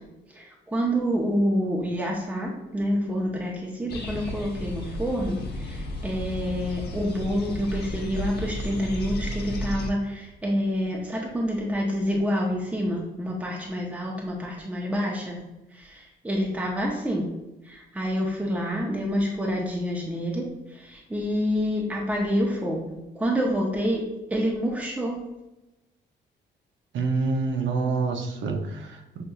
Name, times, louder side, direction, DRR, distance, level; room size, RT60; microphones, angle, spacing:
voice 1, 0.3-15.4 15.7-17.3 17.6-24.0 24.3-25.2, equal, 5° right, -2 dB, 0.7 m, -27 dB
sound 1, 3.9-9.9, left 1 dB, 55° left, 0.9 m, -33 dB
voice 2, 26.9-29.2, right 4 dB, 70° right, 4 dB, 0.7 m, -27 dB
6.3 x 2.6 x 2.3 m, 0.98 s
cardioid pair, 90°, 20 cm